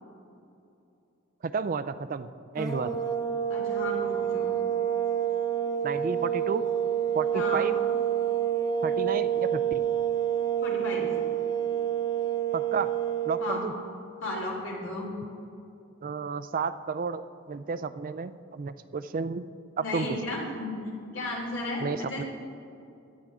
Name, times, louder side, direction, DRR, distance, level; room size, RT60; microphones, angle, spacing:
voice 1, 1.4-2.9 5.8-6.7 7.1-7.7 8.8-9.8 12.5-12.9 13.3-13.7 16.0-19.4 19.9-20.1 21.8-22.2, right 5 dB, 40° right, 13 dB, 0.4 m, -32 dB
sound 1, 2.6-13.6, right 9 dB, 15° left, 0.8 m, -28 dB
voice 2, 3.5-4.5 7.3-7.7 10.6-11.1 13.4-13.7 14.2-15.1 19.8-22.2, left 1 dB, 65° left, -2 dB, 3.2 m, -34 dB
17.0 x 11.5 x 3.6 m, 2.6 s
head